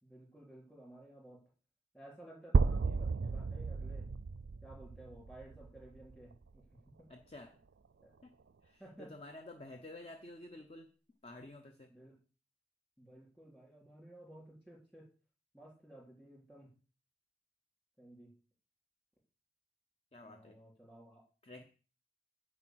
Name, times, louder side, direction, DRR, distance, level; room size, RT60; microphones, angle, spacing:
voice 1, 0.0-1.4 1.9-4.1 4.6-6.7 7.0-7.1 8.0-8.1 8.8-9.1 11.9-12.2 13.0-15.1 15.5-16.7 18.0-18.3 20.2-21.2, right 1 dB, 10° left, -4 dB, 3.5 m, -55 dB
sound 1, 2.5-6.5, right 4 dB, 75° right, 0.4 m, -33 dB
voice 2, 7.1-7.6 8.2-8.4 8.6-10.9 11.2-11.9 20.1-20.6 21.4-21.6, left 2 dB, 35° left, 6 dB, 0.7 m, -51 dB
10.0 x 4.8 x 7.8 m, 0.36 s
head